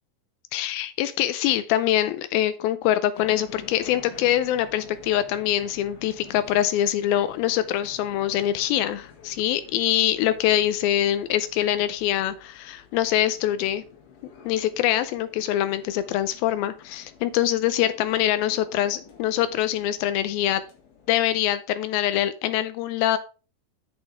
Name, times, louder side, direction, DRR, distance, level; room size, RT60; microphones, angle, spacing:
voice 1, 0.5-13.8 14.5-20.6 21.1-23.2, left 12 dB, 85° left, 12 dB, 2.2 m, -24 dB
sound 1, 3.2-21.5, left 7 dB, 65° left, 3.7 m, -49 dB
8.3 x 8.0 x 3.4 m, 0.34 s
omnidirectional pair, 4.8 m